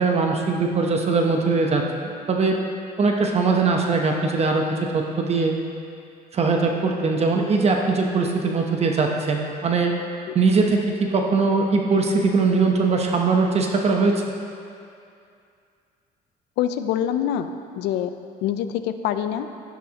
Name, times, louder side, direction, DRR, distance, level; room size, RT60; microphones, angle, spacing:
voice 1, 0.0-2.6 3.0-5.6 6.3-9.9 10.3-14.2, right 4 dB, 40° right, 1 dB, 0.9 m, -21 dB
voice 2, 16.6-18.2 18.4-19.5, left 10 dB, 85° left, 9 dB, 0.5 m, -25 dB
11.0 x 10.5 x 2.9 m, 2.4 s
cardioid pair, 110°, 17 cm